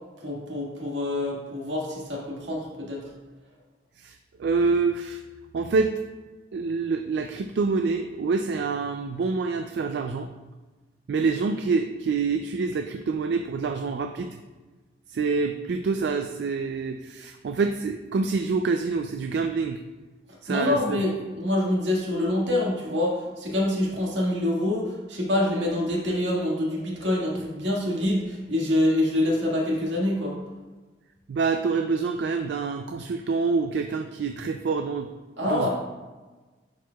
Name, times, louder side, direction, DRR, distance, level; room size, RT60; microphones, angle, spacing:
voice 1, 0.2-3.0 20.5-30.3 35.4-35.7, left 1 dB, 85° right, -3 dB, 1.7 m, -26 dB
voice 2, 4.0-5.2 5.5-5.9 6.5-10.3 11.1-14.4 15.1-19.8 20.4-21.0 31.3-35.1 35.5-35.7, right 4 dB, 70° right, 6 dB, 0.3 m, -26 dB
10.5 x 4.6 x 2.3 m, 1.2 s
head